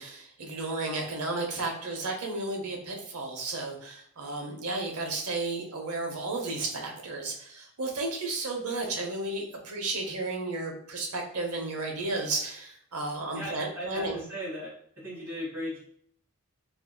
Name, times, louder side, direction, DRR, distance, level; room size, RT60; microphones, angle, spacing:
voice 1, 0.0-14.2, right 2 dB, 85° right, 2 dB, 0.7 m, -33 dB
voice 2, 13.3-14.7 15.0-15.8, equal, 10° right, -11 dB, 1.5 m, -37 dB
3.7 x 2.6 x 2.2 m, 0.66 s
head